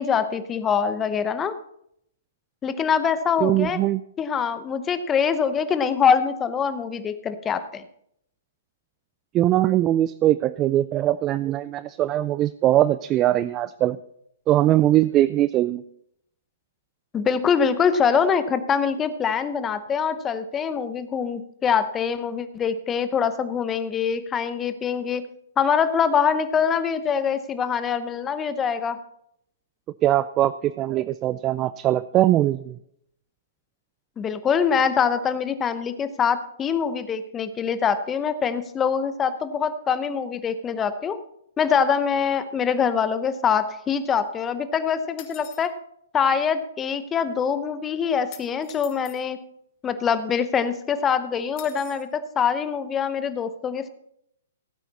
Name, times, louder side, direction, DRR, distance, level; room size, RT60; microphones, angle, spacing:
voice 1, 0.0-1.5 2.6-3.8 4.2-7.8 17.1-25.2 25.6-29.0 34.2-41.2 41.6-45.7 46.1-49.4 49.8-53.9, left 7 dB, 20° left, 12 dB, 0.9 m, -24 dB
voice 2, 3.4-4.0 9.3-14.0 14.5-15.8 30.0-32.8, right 13 dB, 25° right, 16 dB, 0.3 m, -21 dB
sound 1, 45.2-45.7 48.3-49.2 51.6-52.1, left 12 dB, 40° left, 1.6 m, -44 dB
16.0 x 9.0 x 4.1 m, 0.73 s
hypercardioid pair, 130°, 0 cm